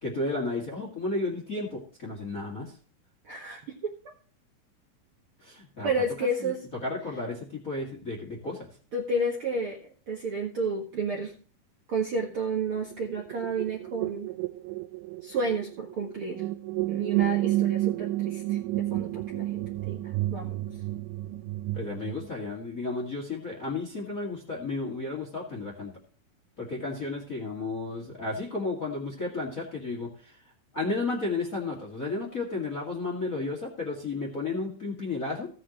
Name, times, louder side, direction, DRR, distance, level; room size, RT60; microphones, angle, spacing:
voice 1, 0.0-2.7 5.4-5.9 6.4-6.5 6.8-8.7 21.7-25.9 26.6-30.3 30.7-35.5, left 3 dB, 30° left, 0 dB, 1.9 m, -33 dB
voice 2, 3.3-3.9 5.8-6.6 8.9-9.8 10.1-11.3 11.9-14.3 15.2-16.4 16.9-20.0 20.3-20.6, right 2 dB, 50° right, -2 dB, 1.8 m, -31 dB
sound 1, 12.7-22.3, right 16 dB, 85° right, 2.5 m, -31 dB
16.0 x 7.9 x 3.0 m, 0.42 s
omnidirectional pair, 4.4 m